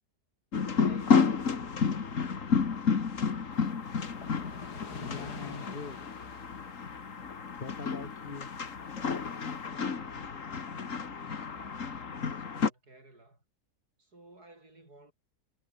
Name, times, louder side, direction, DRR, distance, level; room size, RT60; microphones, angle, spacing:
sound 1, 0.5-12.7, left 5 dB, 55° left, 2.1 m, -31 dB
voice 1, 0.7-3.0 9.6-13.4 14.0-15.1, right 2 dB, 75° right, 7.5 m, -56 dB
sound 2, 3.5-8.2 8.6-9.7, left 5 dB, 85° left, 3.2 m, -47 dB
voice 2, 5.0-6.1 7.6-8.5, left 4 dB, 35° left, 2.4 m, -42 dB
omnidirectional pair, 1.7 m